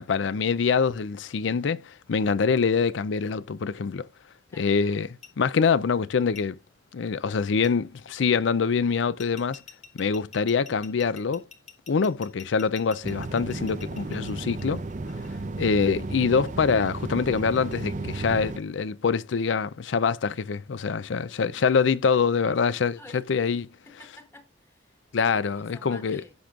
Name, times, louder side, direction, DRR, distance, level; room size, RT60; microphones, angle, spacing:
voice 1, 0.0-4.1 4.6-5.1 5.4-6.6 6.9-9.6 9.9-11.4 11.9-14.8 15.6-23.7 25.1-26.2, left 5 dB, 75° left, 0.5 m, -25 dB
sound 1, 5.2-5.3 6.4-6.5 7.6-7.7 9.2-15.3 16.5-17.7, left 5 dB, 35° left, 1.4 m, -47 dB
sound 2, 13.0-18.6, right 2 dB, 40° right, 0.6 m, -34 dB
voice 2, 22.5-23.6 23.9-25.0 25.3-26.3, left 1 dB, 15° left, 1.3 m, -51 dB
15.0 x 6.0 x 2.4 m
head